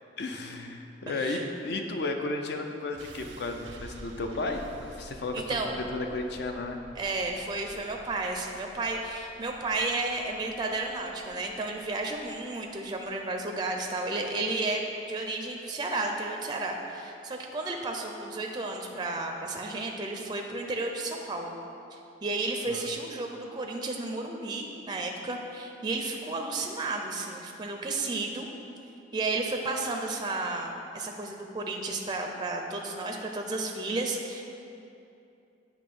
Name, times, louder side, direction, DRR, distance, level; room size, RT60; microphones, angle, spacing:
voice 1, 0.2-6.8 22.7-22.9, left 2 dB, 65° left, 4 dB, 0.5 m, -34 dB
voice 2, 1.1-1.5 5.3-5.7 7.0-21.6 21.9-28.5 29.1-34.4, right 2 dB, 25° right, 2 dB, 0.4 m, -32 dB
sound 1, 2.9-15.0, right 2 dB, 85° right, 0.5 m, -50 dB
8.7 x 3.0 x 5.3 m, 2.7 s
head